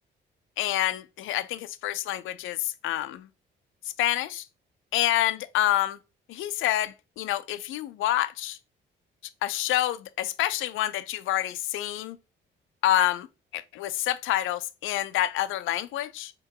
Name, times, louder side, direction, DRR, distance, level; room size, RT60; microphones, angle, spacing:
voice 1, 0.6-3.3 3.8-4.5 4.9-6.0 6.3-8.6 9.4-12.2 12.8-13.3 13.5-16.3, left 13 dB, 85° left, 0.5 m, -27 dB
3.6 x 3.0 x 4.7 m
cardioid pair, 90°, 20 cm